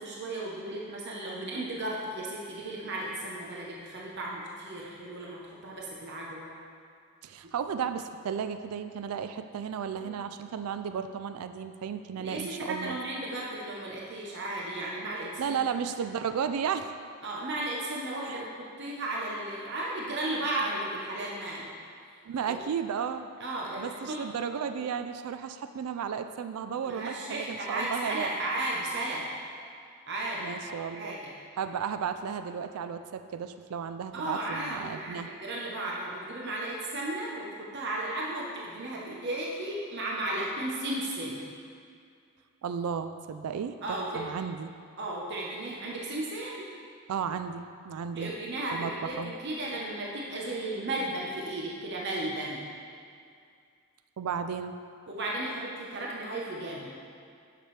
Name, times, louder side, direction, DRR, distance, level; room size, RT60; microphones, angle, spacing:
voice 1, 0.0-6.5 7.4-7.5 10.0-10.2 12.2-15.6 17.2-21.7 22.4-22.5 23.4-24.2 26.8-29.2 30.1-31.3 34.1-41.5 43.8-44.2 45.0-46.7 48.1-52.7 55.1-57.0, right 1 dB, 50° right, -3 dB, 0.8 m, -35 dB
voice 2, 7.2-13.0 15.4-16.9 18.2-18.4 22.2-23.2 23.8-28.3 30.4-31.1 31.6-35.3 42.6-44.7 47.1-48.9 49.2-49.3 54.2-54.8, right 7 dB, 85° right, 9 dB, 0.3 m, -34 dB
9.4 x 6.0 x 3.2 m, 2.3 s
head